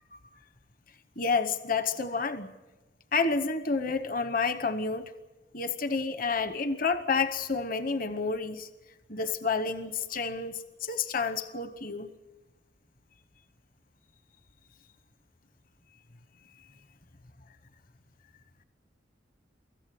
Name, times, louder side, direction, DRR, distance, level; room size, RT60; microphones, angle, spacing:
voice 1, 1.2-2.5 3.1-5.1 5.5-8.7 9.1-12.1, left 4 dB, 50° left, 11 dB, 1.0 m, -29 dB
24.5 x 14.5 x 9.4 m, 1.1 s
head